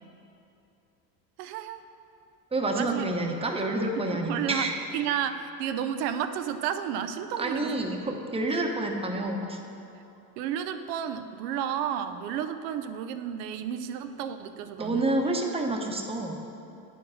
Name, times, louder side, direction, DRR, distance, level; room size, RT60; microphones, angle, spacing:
voice 1, 1.4-1.8 2.7-3.0 4.0-4.7 4.9-7.7 10.4-15.0, right 9 dB, 80° right, 9 dB, 0.6 m, -32 dB
voice 2, 2.5-4.7 7.4-9.6 14.8-16.5, right 2 dB, 10° right, 2 dB, 0.9 m, -28 dB
8.8 x 5.0 x 6.3 m, 2.7 s
supercardioid pair, 100°, 47 cm